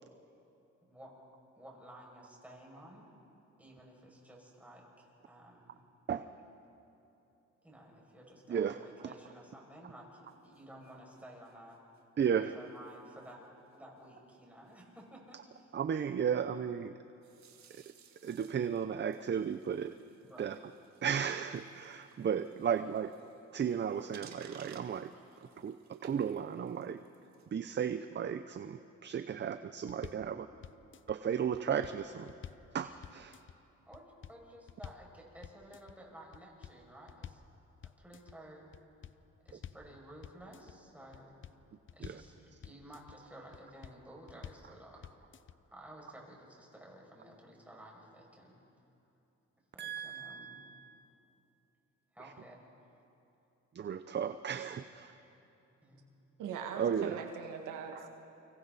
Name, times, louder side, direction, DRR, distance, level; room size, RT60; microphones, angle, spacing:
voice 1, 0.8-1.1 1.5-3.1 3.6-5.8 7.6-11.8 12.3-13.4 13.7-15.7 20.3-20.5 22.5-22.7 25.1-25.4 30.2-30.5 33.8-37.4 38.0-38.7 39.4-41.4 41.9-45.3 45.7-48.6 49.7-50.7 52.1-52.9 55.8-56.0, right 1 dB, 5° right, -2 dB, 6.4 m, -54 dB
voice 2, 8.5-9.1 12.2-12.5 15.7-16.9 18.2-19.9 20.4-20.6 21.0-23.1 23.5-25.1 25.4-25.8 26.0-27.0 27.5-30.5 31.1-32.3 32.7-33.4 42.0-42.2 49.8-51.0 52.2-52.3 53.7-55.1 56.8-57.2, right 8 dB, 35° right, 11 dB, 0.7 m, -34 dB
sound 1, 10.3-12.2 12.7-13.0 13.2-13.5 13.7-13.8 14.0-14.1 14.3-14.4 14.7-15.0 17.2-27.5, right 7 dB, 65° right, 1.9 m, -60 dB
sound 2, 29.9-30.3 30.6-31.2 31.5-32.7 33.0-33.6 33.9-34.4 34.7-35.1 35.4-36.0 36.3-37.5 37.8-38.4 38.7-39.9 40.2-40.8 41.1-42.3 42.6-43.2 43.5-44.0 44.3-44.7 45.0-45.6, left 9 dB, 40° left, 0.6 m, -49 dB
voice 3, 56.4-58.1, right 7 dB, 90° right, 3 dB, 1.9 m, -41 dB
29.5 x 25.0 x 4.1 m, 2.9 s
cardioid pair, 90°, 30 cm